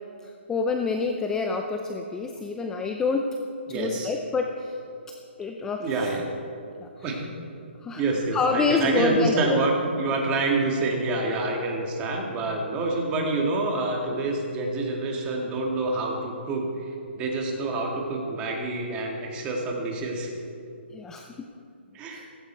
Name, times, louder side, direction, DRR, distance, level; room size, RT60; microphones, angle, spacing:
voice 1, 0.2-3.4 3.7-4.8 5.4-6.1 6.8-7.2 7.8-8.0 8.3-9.6 20.9-21.5 22.1-22.2, left 4 dB, 10° left, 4 dB, 0.5 m, -27 dB
voice 2, 3.7-4.1 5.8-6.2 7.0-7.3 7.9-20.3 21.9-22.3, right 2 dB, 15° right, 0 dB, 2.0 m, -27 dB
15.5 x 15.5 x 4.6 m, 2.6 s
hypercardioid pair, 155°, 6 cm